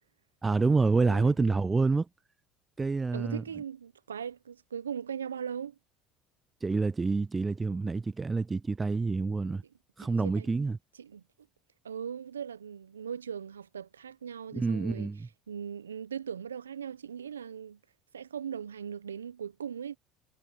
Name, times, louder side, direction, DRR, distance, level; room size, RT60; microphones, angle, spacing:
voice 1, 0.4-2.1 2.8-3.4 6.6-9.6 10.0-10.8 14.5-15.3, right 4 dB, 20° right, 0.4 m, -27 dB
voice 2, 1.0-1.5 3.1-5.7 10.0-10.5 11.0-11.2 11.8-15.1 15.5-17.8 18.1-20.0, right 8 dB, 85° right, 1.1 m, -39 dB
figure-of-eight pair, 65°, 0 cm